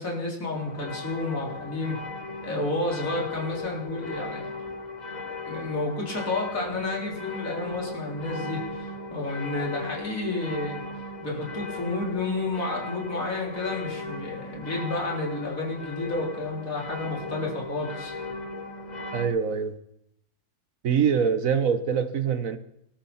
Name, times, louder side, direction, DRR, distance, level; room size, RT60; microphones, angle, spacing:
voice 1, 0.0-2.0 2.4-4.6 5.5-10.8 11.2-18.1, left 2 dB, 45° left, 4.3 m, -31 dB
sound 1, 0.5-19.3, left 3 dB, 25° left, 1.1 m, -37 dB
voice 2, 19.1-19.7 20.8-22.6, right 7 dB, 50° right, 1.3 m, -24 dB
19.0 x 13.0 x 4.3 m
omnidirectional pair, 2.0 m